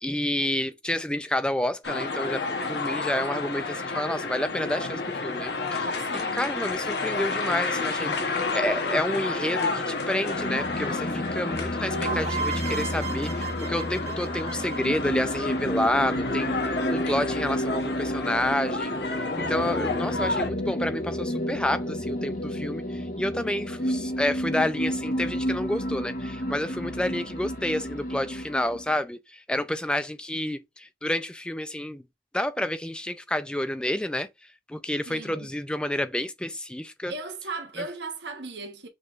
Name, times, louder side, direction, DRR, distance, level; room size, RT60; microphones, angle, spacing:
voice 1, 0.0-32.0 32.3-34.3 34.7-37.1, left 1 dB, 5° left, 0.3 m, -29 dB
sound 1, 1.8-20.5, left 3 dB, 75° left, 0.9 m, -30 dB
voice 2, 6.0-6.5 35.0-35.5 37.1-38.9, right 3 dB, 85° right, 1.2 m, -37 dB
sound 2, 10.3-28.9, equal, 50° left, 1.0 m, -31 dB
sound 3, 12.0-15.8, right 5 dB, 35° right, 0.8 m, -34 dB
6.4 x 3.2 x 2.4 m
head